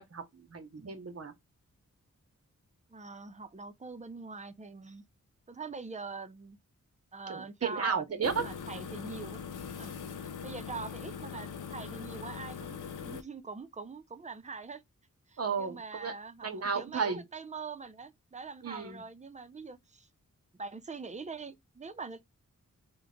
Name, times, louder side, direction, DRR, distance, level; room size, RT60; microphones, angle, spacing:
voice 1, 0.0-1.3 7.3-8.4 10.0-10.1 15.4-16.1 16.4-17.2 18.6-19.0, right 5 dB, 45° right, 0.9 m, -34 dB
voice 2, 2.9-5.0 5.5-6.6 7.1-9.4 9.8-10.0 10.4-14.8 15.3-20.1 20.6-22.2, right 4 dB, 20° right, 0.5 m, -43 dB
sound 1, 8.2-13.2, left 6 dB, 65° left, 0.6 m, -41 dB
2.9 x 2.2 x 3.6 m
cardioid pair, 55°, 33 cm